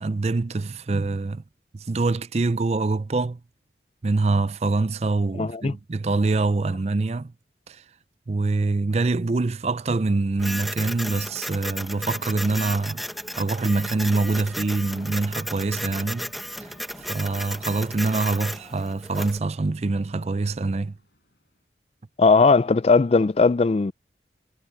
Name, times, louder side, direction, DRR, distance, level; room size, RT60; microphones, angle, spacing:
voice 1, 0.0-1.4 1.7-3.4 4.0-7.3 7.7-7.8 8.3-13.0 13.4-16.3 17.1-20.9, right 3 dB, 35° right, 0.4 m, -25 dB
voice 2, 5.4-5.7 22.2-23.9, left 4 dB, 35° left, 0.3 m, -18 dB
Printer, 10.4-19.4, equal, ahead, 1.1 m, -34 dB
sound 1, 11.8-21.6, left 1 dB, 65° left, 6.7 m, -53 dB
head